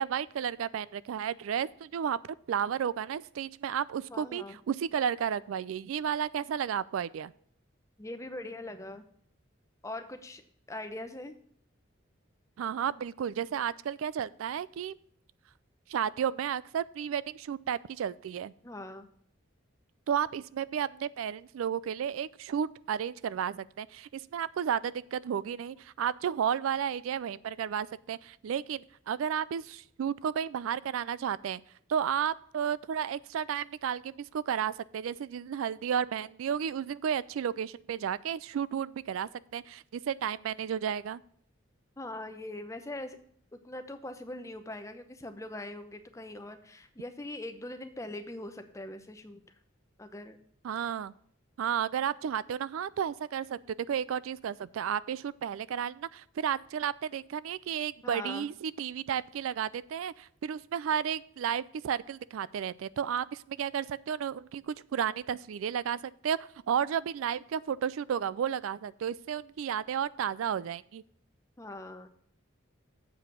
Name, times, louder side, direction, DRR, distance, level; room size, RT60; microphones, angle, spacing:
voice 1, 0.0-2.2 2.5-7.3 12.6-14.9 15.9-18.5 20.1-31.6 31.9-41.2 50.6-51.1 51.6-53.6 53.9-66.4 66.7-71.0, right 8 dB, 90° right, 19 dB, 0.3 m, -32 dB
voice 2, 4.1-4.6 8.0-9.0 9.8-10.4 10.7-11.4 18.6-19.1 42.0-43.2 43.5-49.4 50.0-50.4 58.0-58.5 71.6-72.1, left 1 dB, 15° left, 8 dB, 0.7 m, -41 dB
7.8 x 4.8 x 6.7 m, 0.63 s
head